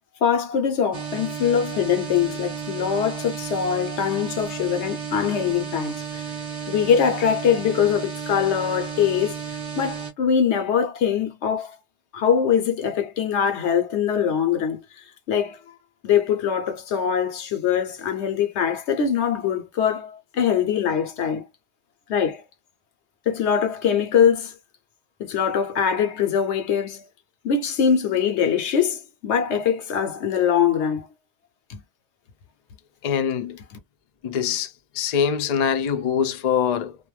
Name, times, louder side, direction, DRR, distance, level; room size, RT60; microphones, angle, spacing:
voice 1, 0.2-6.2 6.7-9.4 9.8-11.7 12.1-14.8 15.3-15.6 16.0-21.4 22.1-22.4 23.3-24.5 25.2-27.0 27.4-31.1 31.7-31.8, left 7 dB, 80° left, 1.0 m, -22 dB
sound 1, 0.9-10.1, right 7 dB, 40° right, 0.7 m, -33 dB
voice 2, 33.0-33.6 34.2-37.0, left 7 dB, 50° left, 0.5 m, -24 dB
2.5 x 2.1 x 3.1 m
omnidirectional pair, 1.1 m